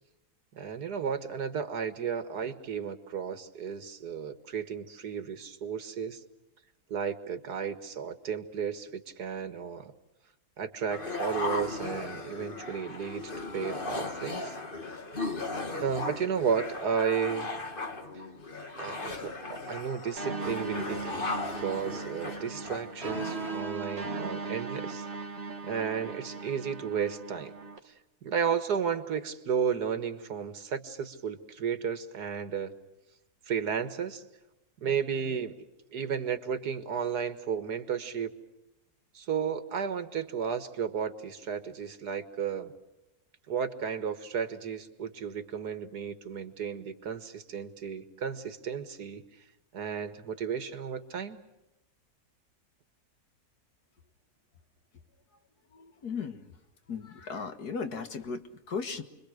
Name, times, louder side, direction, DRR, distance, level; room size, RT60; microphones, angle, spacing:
voice 1, 0.6-6.2 6.9-9.9 10.6-14.6 15.8-17.6 18.8-21.3 21.6-25.0 25.6-27.5 27.8-27.9 28.2-32.7 33.5-34.2 34.8-35.7 35.9-38.3 39.1-42.7 43.5-49.2 49.7-51.4, right 7 dB, 85° right, 10 dB, 2.1 m, -33 dB
sound 1, 10.9-23.7, left 3 dB, 35° left, 1.9 m, -37 dB
sound 2, 20.2-27.8, right 4 dB, 40° right, 2.2 m, -38 dB
voice 2, 55.7-56.5 56.9-59.0, left 5 dB, 75° left, 7 dB, 2.2 m, -36 dB
30.0 x 23.0 x 6.5 m, 0.97 s
omnidirectional pair, 1.7 m